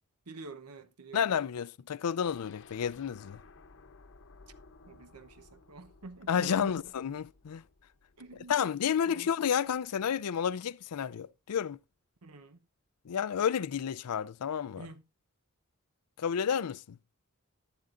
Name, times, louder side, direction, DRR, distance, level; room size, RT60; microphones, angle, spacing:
voice 1, 0.3-1.3 4.9-6.9 8.2-8.7 9.0-9.3 12.2-12.7 14.8-15.0, right 3 dB, 85° right, 0.9 m, -48 dB
voice 2, 1.1-3.4 6.3-7.6 8.5-11.8 13.0-14.9 16.2-17.0, left 8 dB, 85° left, 0.4 m, -31 dB
sound 1, 2.3-10.1 10.5-10.6 10.9-11.0, left 4 dB, 60° left, 0.9 m, -58 dB
11.0 x 11.0 x 2.5 m
head